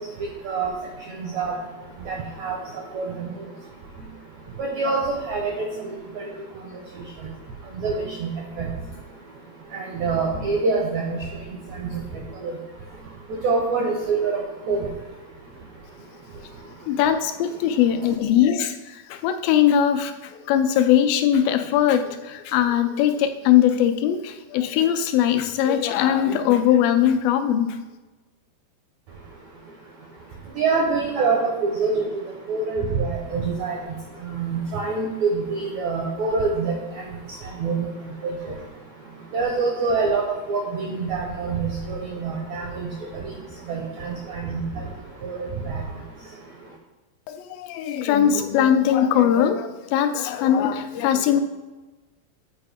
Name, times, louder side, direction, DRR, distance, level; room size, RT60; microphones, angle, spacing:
voice 1, 1.2-1.5 2.1-2.6 2.9-3.3 4.6-6.3 7.8-8.3 8.6-8.7 9.7-11.2 11.8-12.0 12.4-12.5 13.4-14.4 14.7-14.9 30.6-32.1 32.5-33.8 34.3-36.7 37.6-37.8 38.2-38.3 39.3-40.2 40.5-42.9 43.7-44.6 45.2-45.8, right 4 dB, 80° right, -1 dB, 1.6 m, -25 dB
voice 2, 16.9-27.7 47.4-51.4, left 10 dB, 80° left, 8 dB, 2.3 m, -20 dB
8.9 x 4.5 x 3.4 m, 1.1 s
omnidirectional pair, 4.3 m